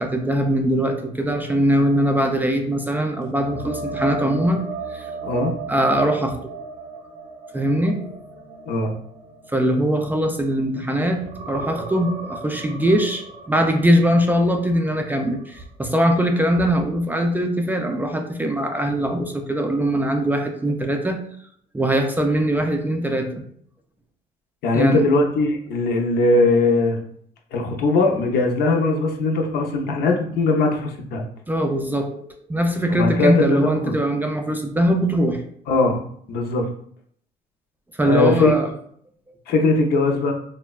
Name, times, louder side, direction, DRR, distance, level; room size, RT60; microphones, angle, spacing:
voice 1, 0.0-4.6 4.9-5.1 5.7-6.4 7.5-8.1 9.5-11.2 11.5-21.2 21.7-23.4 24.7-25.1 31.5-35.4 38.0-38.7, equal, 10° right, 4 dB, 0.3 m, -21 dB
sound 1, 3.4-10.8 11.1-15.0 15.4-15.6 19.0-19.1, right 3 dB, 85° right, 0.6 m, -35 dB
voice 2, 5.2-5.5 8.7-8.9 24.6-27.0 27.5-31.2 32.9-34.0 35.7-36.0 36.3-36.7 38.0-38.5 39.5-40.3, left 3 dB, 70° left, 2 dB, 0.6 m, -20 dB
3.2 x 2.1 x 2.2 m, 0.63 s
cardioid pair, 110°, 17 cm